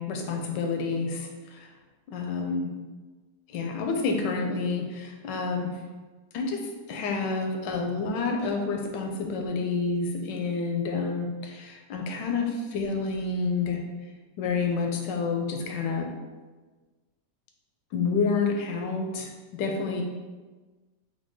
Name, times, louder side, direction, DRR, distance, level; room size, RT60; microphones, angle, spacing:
voice 1, 0.0-1.7 2.1-2.7 3.5-5.7 6.3-6.6 6.9-13.8 14.4-16.1 17.9-20.0, left 4 dB, 90° left, 3 dB, 1.3 m, -29 dB
4.6 x 2.2 x 3.7 m, 1.3 s
omnidirectional pair, 1.8 m